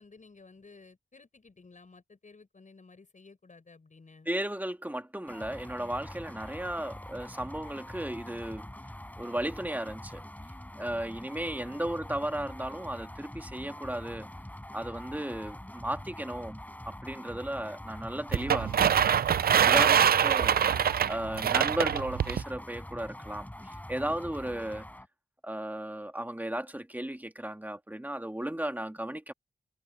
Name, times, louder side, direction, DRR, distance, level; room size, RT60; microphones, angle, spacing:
voice 1, 0.0-4.3 11.7-12.0 24.4-24.7, left 3 dB, 45° left, 6.7 m, -55 dB
voice 2, 4.3-8.7 9.2-10.2 10.8-14.3 14.7-19.1 19.6-20.6 21.1-24.9 25.4-29.3, right 1 dB, 10° right, 2.5 m, -35 dB
sound 1, 5.3-25.1, left 1 dB, 10° left, 4.1 m, -44 dB
sound 2, 18.3-22.4, right 8 dB, 65° right, 0.4 m, -24 dB
wide cardioid pair, 80°, 17 cm